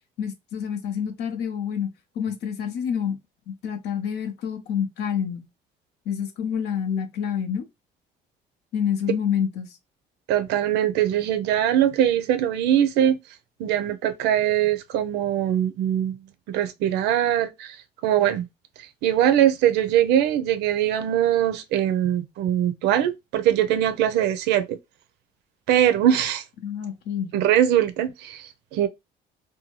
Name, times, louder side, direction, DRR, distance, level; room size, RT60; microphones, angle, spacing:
voice 1, 0.2-1.9 2.2-3.2 3.5-5.5 6.1-7.6 8.7-9.7 26.6-27.4, left 8 dB, 75° left, 0.7 m, -27 dB
voice 2, 10.3-13.2 13.6-16.2 16.5-17.8 18.0-18.5 19.0-24.8 25.7-26.4 27.3-28.9, right 11 dB, 85° right, 0.5 m, -22 dB
2.7 x 2.2 x 2.9 m
cardioid pair, 110°, 17 cm